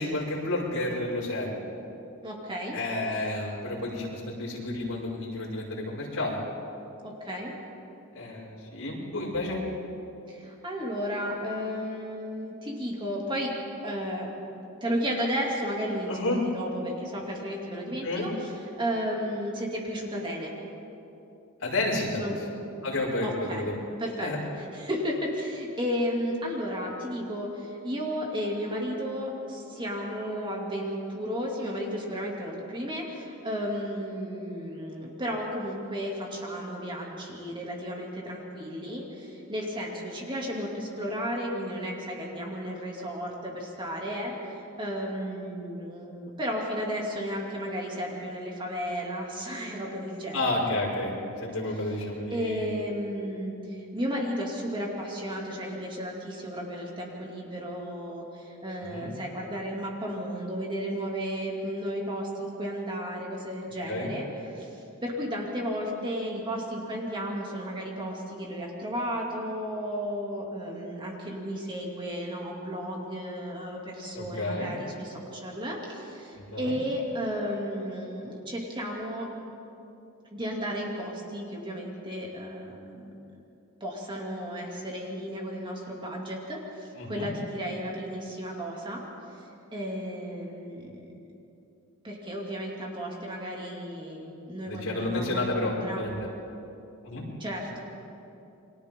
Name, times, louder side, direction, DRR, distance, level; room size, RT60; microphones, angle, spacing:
voice 1, 0.0-1.6 2.7-6.4 8.1-9.6 16.1-16.4 18.0-18.3 21.6-22.2 22.8-23.7 24.2-24.4 50.3-51.1 51.4-52.7 58.9-59.1 63.9-64.1 74.1-74.7 76.4-76.8 87.0-87.3 94.6-96.2 97.0-97.2, left 2 dB, 65° left, -4 dB, 5.7 m, -31 dB
voice 2, 2.2-2.8 7.0-7.5 10.3-13.5 13.8-14.3 14.8-20.5 22.2-22.4 23.2-23.6 24.0-50.5 52.3-64.7 65.0-79.3 80.3-83.1 83.8-89.0 89.7-91.0 92.0-96.0 97.4-97.8, equal, 20° right, -2 dB, 2.7 m, -33 dB
29.5 x 23.5 x 3.8 m, 2.9 s
head